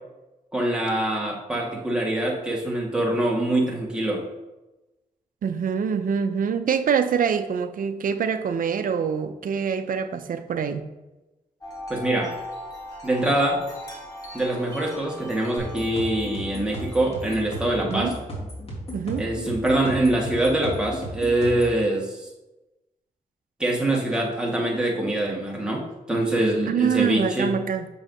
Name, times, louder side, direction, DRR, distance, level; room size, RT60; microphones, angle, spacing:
voice 1, 0.5-4.2 11.9-12.3 13.0-13.6 14.3-18.1 19.2-22.3 23.6-27.5, right 1 dB, 5° right, -3 dB, 1.6 m, -24 dB
voice 2, 5.4-10.8 17.9-18.1 18.9-19.2 26.7-27.9, right 7 dB, 65° right, 9 dB, 0.5 m, -25 dB
Wind chime, 11.6-18.1, left 1 dB, 25° left, 2.0 m, -40 dB
sound 1, 15.6-21.8, equal, 40° left, 2.3 m, -35 dB
7.2 x 5.5 x 2.7 m, 1.0 s
cardioid pair, 80°, 15 cm